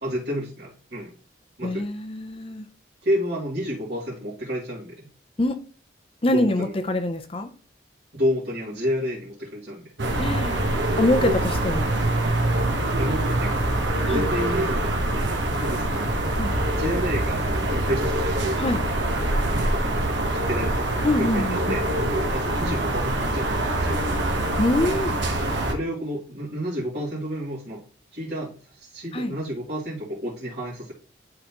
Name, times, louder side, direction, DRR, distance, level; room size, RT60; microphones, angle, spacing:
voice 1, 0.0-1.1 1.6-1.8 3.0-5.1 6.3-6.7 8.1-9.9 13.0-14.9 15.6-16.0 16.7-18.3 18.9-19.1 19.7-20.0 20.3-21.4 21.7-21.8 22.3-23.5 23.8-24.2 25.7-27.8 28.1-30.9, equal, 60° right, 2.6 m, -30 dB
voice 2, 1.6-2.6 5.4-5.6 6.2-7.5 10.2-10.6 11.0-11.9 14.1-14.3 16.4-16.5 18.6-18.8 21.0-21.8 24.6-25.2 29.1-29.4, left 1 dB, 30° left, 0.6 m, -24 dB
sound 1, 10.0-25.7, right 1 dB, 75° right, 1.2 m, -24 dB
11.5 x 3.9 x 3.0 m
head